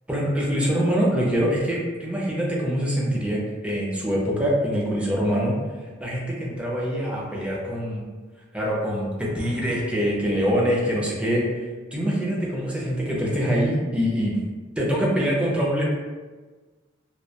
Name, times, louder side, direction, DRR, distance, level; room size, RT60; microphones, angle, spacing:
voice 1, 0.1-5.5 6.0-8.0 8.5-11.5 11.9-14.4 14.8-15.8, equal, 5° right, -4 dB, 0.4 m, -24 dB
2.2 x 2.1 x 2.7 m, 1.3 s
head